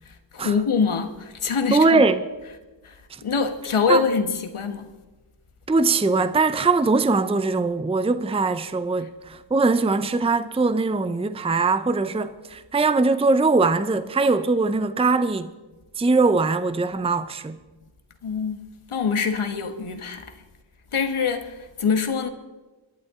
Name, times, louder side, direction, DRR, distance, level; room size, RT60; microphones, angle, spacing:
voice 1, 0.0-2.0 2.8-4.9 18.2-18.6 18.9-20.4 20.9-22.3, left 5 dB, 85° left, 1.3 m, -25 dB
voice 2, 1.7-2.2 3.1-3.2 3.9-4.0 5.7-15.5 16.0-17.6, right 3 dB, 10° right, 0.6 m, -21 dB
23.0 x 12.0 x 3.7 m
wide cardioid pair, 65°, 49 cm